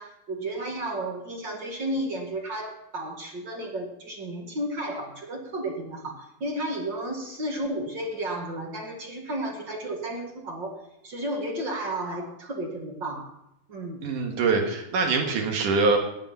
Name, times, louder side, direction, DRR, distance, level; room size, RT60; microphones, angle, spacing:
voice 1, 0.0-10.8 11.0-13.3 13.7-14.0, right 1 dB, 40° right, 1 dB, 2.1 m, -33 dB
voice 2, 14.0-16.0, right 4 dB, 65° right, 2 dB, 3.1 m, -24 dB
15.5 x 10.0 x 5.7 m, 0.83 s
omnidirectional pair, 4.1 m